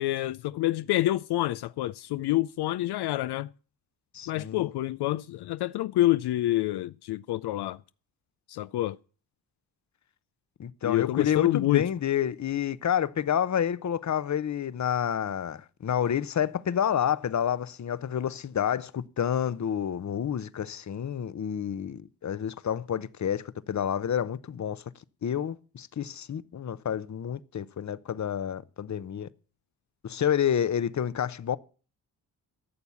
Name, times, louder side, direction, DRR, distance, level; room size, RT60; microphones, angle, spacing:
voice 1, 0.0-3.5 4.3-7.8 8.5-9.0 10.8-11.9, left 15 dB, 80° left, 0.5 m, -27 dB
voice 2, 4.1-4.7 10.6-24.8 25.2-29.3 30.0-31.6, left 9 dB, 45° left, 0.8 m, -29 dB
14.0 x 7.1 x 7.0 m
cardioid pair, 60°, 39 cm